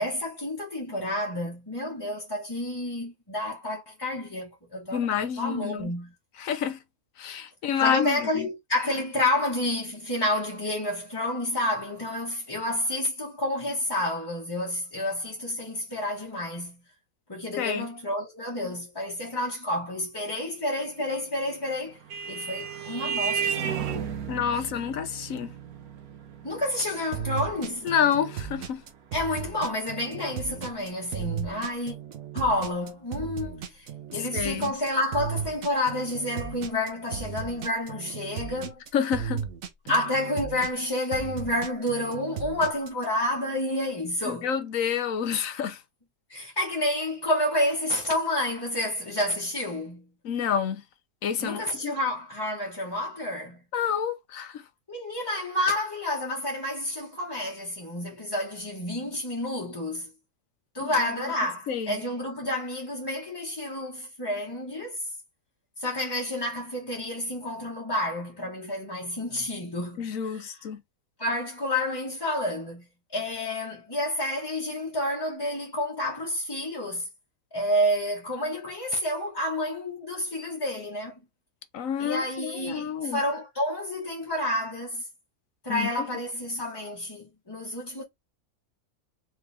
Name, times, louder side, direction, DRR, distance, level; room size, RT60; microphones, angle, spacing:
voice 1, 0.0-6.1 7.8-16.8 17.3-22.0 22.3-23.8 24.5-24.7 26.4-27.9 29.1-31.9 32.3-38.8 39.9-44.5 46.3-50.1 51.4-53.6 54.9-60.1 60.7-65.0 65.8-70.7 71.2-77.1 77.5-81.1 82.0-85.1 85.6-88.0, left 1 dB, 20° left, 1.1 m, -29 dB
voice 2, 4.9-5.9 6.4-6.8 7.2-8.4 17.6-17.9 24.3-25.5 27.8-28.8 34.3-34.7 38.9-39.4 44.3-45.8 50.2-50.8 51.2-51.9 53.7-54.6 60.8-60.9 61.7-62.0 70.0-70.8 81.7-83.2 85.7-85.9, left 8 dB, 70° left, 1.2 m, -28 dB
Vehicle horn car horn honking, 21.5-30.5, right 7 dB, 85° right, 1.4 m, -35 dB
sound 1, 27.1-43.0, right 8 dB, 70° right, 1.3 m, -36 dB
4.6 x 3.1 x 3.3 m
omnidirectional pair, 1.5 m